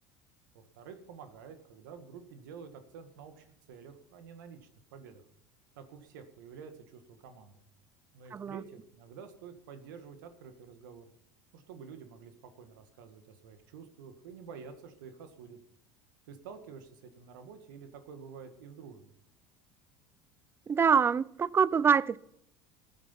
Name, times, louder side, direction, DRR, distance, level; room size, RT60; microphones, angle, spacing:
voice 1, 0.5-4.6 4.9-5.2 5.8-7.6 8.1-11.1 11.5-15.6 16.3-19.1, right 6 dB, 85° right, 1.7 m, -49 dB
voice 2, 8.3-8.6 20.7-22.2, right 6 dB, 25° right, 0.4 m, -25 dB
14.5 x 9.9 x 5.7 m
supercardioid pair, 95°, 10 cm